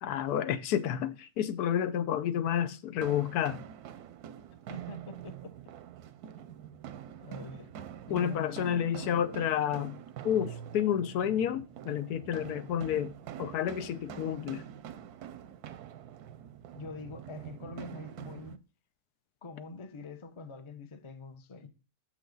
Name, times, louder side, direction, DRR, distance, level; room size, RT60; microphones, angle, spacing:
voice 1, 0.0-3.6 8.1-10.0 10.2-13.1 13.4-14.6, left 9 dB, 90° left, 1.2 m, -30 dB
sound 1, 3.0-18.6, right 10 dB, 90° right, 1.1 m, -45 dB
voice 2, 4.7-5.5 7.2-7.7 8.1-9.2 16.7-18.6 19.4-21.7, left 4 dB, 30° left, 0.5 m, -45 dB
6.7 x 6.3 x 3.8 m
omnidirectional pair, 1.6 m